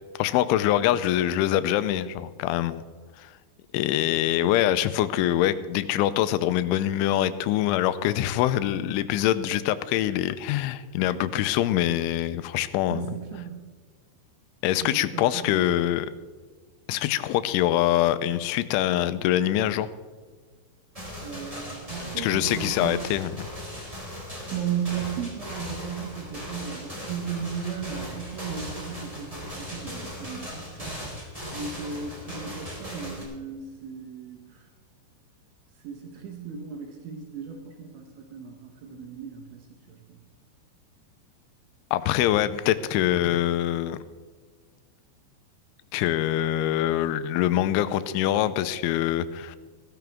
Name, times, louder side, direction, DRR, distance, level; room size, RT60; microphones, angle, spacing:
voice 1, 0.2-2.8 3.2-3.3 3.7-13.1 14.6-16.1 16.9-19.9 22.2-23.5 41.9-44.0 45.9-49.6, left 12 dB, 85° left, 13 dB, 3.0 m, -24 dB
voice 2, 12.9-13.7 14.8-15.7 21.2-23.0 24.5-34.7 35.8-40.2, right 7 dB, 75° right, 3 dB, 3.5 m, -36 dB
sound 1, 20.9-33.2, equal, 10° right, 3.2 m, -38 dB
16.0 x 14.0 x 3.5 m, 1.5 s
omnidirectional pair, 5.5 m